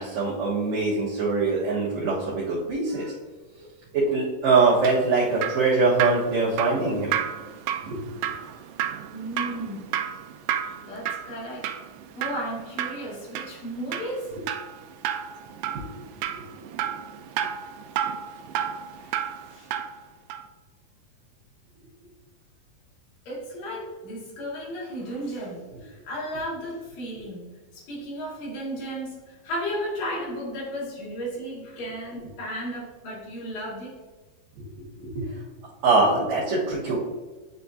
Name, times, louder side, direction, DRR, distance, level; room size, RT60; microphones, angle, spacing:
voice 1, 0.0-3.1 3.9-7.1 7.9-8.0 15.7-15.9 34.6-34.7 35.0-35.4 35.8-37.0, right 3 dB, 60° right, -8 dB, 2.3 m, -23 dB
Drip, 4.5-20.0 20.3-20.4, right 10 dB, 80° right, 2.1 m, -32 dB
voice 2, 9.1-9.9 10.8-11.7 12.2-14.3 19.0-19.2 19.5-19.7 23.3-33.9, equal, 70° left, -5 dB, 3.7 m, -34 dB
9.1 x 4.3 x 2.7 m, 1.3 s
omnidirectional pair, 4.2 m